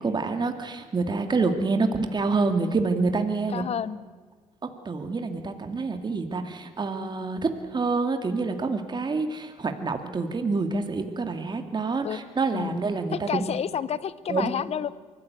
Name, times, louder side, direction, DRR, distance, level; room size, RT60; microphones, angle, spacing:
voice 1, 0.0-3.6 4.6-13.4 14.3-14.5, right 3 dB, 35° right, 6 dB, 2.3 m, -27 dB
voice 2, 3.5-4.0 12.0-12.2 12.5-12.8 13.1-14.9, left 8 dB, 55° left, 18 dB, 0.9 m, -30 dB
24.0 x 15.5 x 8.2 m, 1.5 s
supercardioid pair, 65°, 12 cm